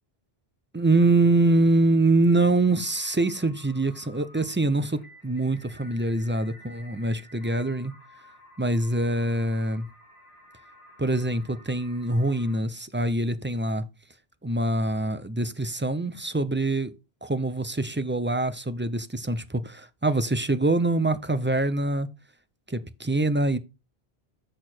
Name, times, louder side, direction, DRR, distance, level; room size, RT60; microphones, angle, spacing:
voice 1, 0.7-7.9 8.6-9.9 11.0-13.8 14.4-16.9 17.2-22.1 22.7-23.6, right 2 dB, 15° right, 0.5 m, -24 dB
sound 1, 2.4-12.6, left 1 dB, 80° left, 2.3 m, -53 dB
8.4 x 6.3 x 4.4 m
omnidirectional pair, 1.0 m